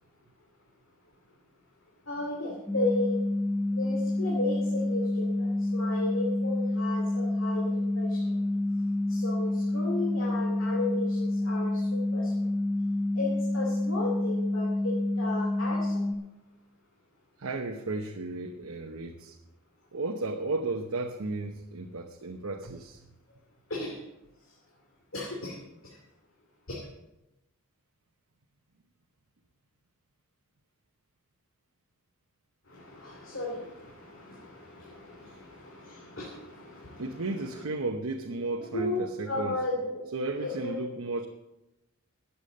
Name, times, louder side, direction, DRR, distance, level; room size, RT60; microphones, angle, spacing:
voice 1, 2.1-3.2 3.7-8.2 9.1-12.3 13.1-16.0 23.7-24.0 25.1-25.6 26.7-26.8 32.7-37.3 38.6-40.0 40.4-40.8, left 2 dB, 65° left, -2 dB, 2.6 m, -34 dB
sound 1, 2.7-16.1, left 1 dB, 5° right, 0.9 m, -28 dB
voice 2, 17.4-19.4 19.9-23.1 37.0-39.6 40.1-41.3, right 2 dB, 85° right, 3 dB, 0.9 m, -34 dB
12.5 x 8.3 x 6.6 m, 0.94 s
head